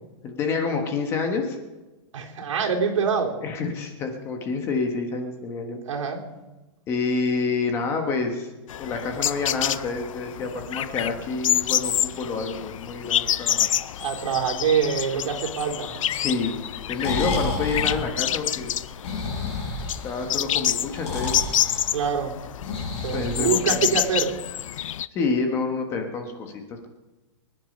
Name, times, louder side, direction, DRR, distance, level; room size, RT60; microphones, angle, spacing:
voice 1, 0.2-1.6 3.4-5.8 6.9-8.5 8.8-13.7 16.1-18.7 20.0-21.5 23.1-23.9 25.1-26.9, left 4 dB, 15° left, 4 dB, 1.3 m, -28 dB
voice 2, 2.1-3.4 5.9-6.2 14.0-16.1 21.9-22.4 23.0-24.4, right 6 dB, 80° right, 1 dB, 3.5 m, -25 dB
sound 1, 8.7-25.1, left 11 dB, 90° left, 0.6 m, -28 dB
Breathing, 16.8-24.1, left 3 dB, 60° left, 6.4 m, -31 dB
24.5 x 9.9 x 5.4 m, 1.1 s
supercardioid pair, 180°, 16 cm